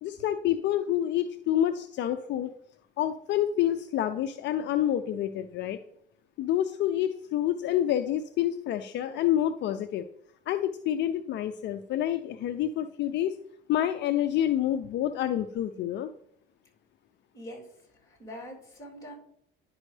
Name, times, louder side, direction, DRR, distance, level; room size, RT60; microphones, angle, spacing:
voice 1, 0.0-2.5 3.0-5.8 6.4-10.0 10.5-13.4 13.7-16.1, left 11 dB, 60° left, 9 dB, 0.5 m, -28 dB
voice 2, 18.0-19.1, equal, 15° left, -2 dB, 3.2 m, -43 dB
10.5 x 5.3 x 3.3 m, 0.72 s
cardioid pair, 110°, 21 cm